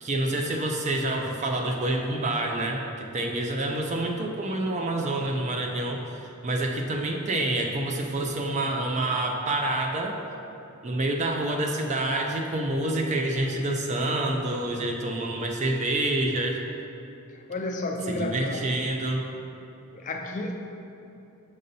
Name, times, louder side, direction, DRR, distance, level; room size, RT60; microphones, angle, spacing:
voice 1, 0.0-10.2 10.8-16.6 18.1-19.3, right 1 dB, 30° right, 2 dB, 0.4 m, -27 dB
voice 2, 17.3-18.7 19.9-20.5, left 2 dB, 35° left, 3 dB, 0.4 m, -32 dB
6.4 x 5.5 x 2.7 m, 2.9 s
head